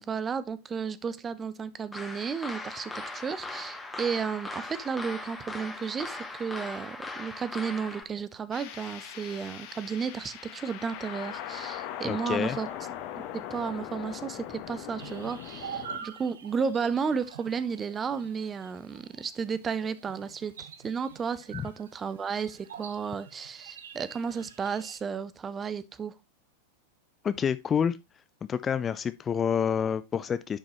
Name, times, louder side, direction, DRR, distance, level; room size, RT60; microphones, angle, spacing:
voice 1, 0.0-12.7 13.2-26.1, right 6 dB, 20° right, 0.7 m, -33 dB
sound 1, 1.9-8.0, left 2 dB, 5° left, 1.5 m, -39 dB
sound 2, 8.5-16.0, left 11 dB, 45° left, 1.4 m, -40 dB
voice 2, 12.0-12.6 21.5-21.6 27.2-28.0 28.5-30.6, left 7 dB, 20° left, 0.4 m, -28 dB
sound 3, 15.0-25.0, right 7 dB, 65° right, 1.0 m, -45 dB
10.0 x 6.0 x 3.1 m
figure-of-eight pair, 90°, 0 cm